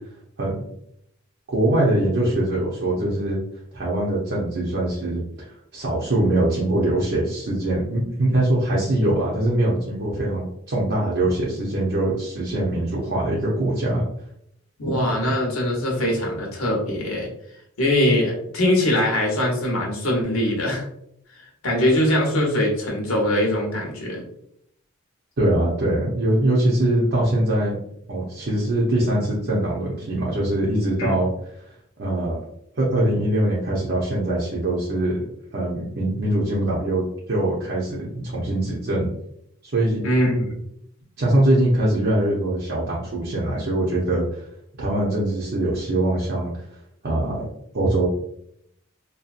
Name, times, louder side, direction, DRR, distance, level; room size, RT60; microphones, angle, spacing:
voice 1, 1.5-3.4 3.7-5.2 5.7-14.1 25.4-27.8 28.1-31.3 32.0-32.4 32.8-35.1 35.5-39.1 39.7-40.0 41.2-44.5 44.8-46.5 47.0-47.5 47.7-48.1, right 1 dB, 50° right, -5 dB, 0.6 m, -22 dB
voice 2, 14.8-17.3 17.8-20.8 21.6-24.2 31.0-31.1 40.0-40.5, left 1 dB, 85° left, -1 dB, 0.9 m, -22 dB
2.7 x 2.3 x 2.4 m, 0.73 s
head